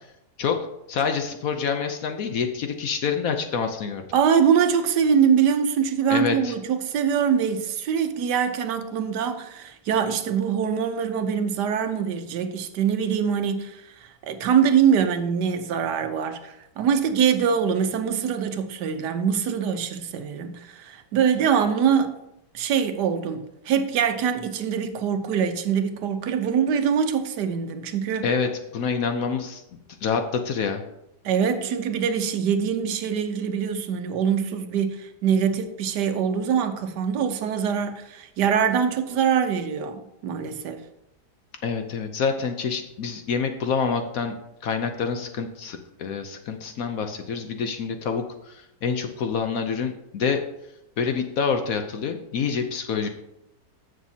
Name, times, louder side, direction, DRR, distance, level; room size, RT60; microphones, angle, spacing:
voice 1, 0.9-4.0 6.1-6.5 28.2-29.6 30.0-30.8 41.6-44.4 44.6-50.4 51.0-53.1, left 6 dB, 65° left, 1.0 m, -27 dB
voice 2, 4.1-13.8 14.2-22.2 22.5-28.3 31.2-40.8, right 7 dB, 75° right, 1.3 m, -23 dB
14.5 x 6.2 x 2.8 m
omnidirectional pair, 1.9 m